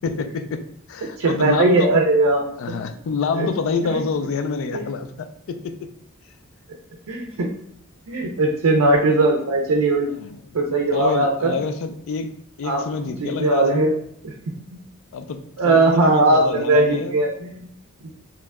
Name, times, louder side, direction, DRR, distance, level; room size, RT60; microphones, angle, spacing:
voice 1, 0.0-1.9 2.6-5.9 10.2-10.4 10.9-13.9 15.1-17.2, left 5 dB, 65° left, 9 dB, 0.3 m, -27 dB
voice 2, 1.2-2.5 3.4-3.5 3.9-4.0 4.7-4.8 7.1-7.5 8.1-10.1 10.5-11.5 12.6-12.8 13.2-13.9 14.2-14.3 14.7-14.8 15.6-17.6, right 2 dB, 75° right, 0 dB, 0.5 m, -19 dB
2.9 x 2.1 x 3.5 m, 0.73 s
head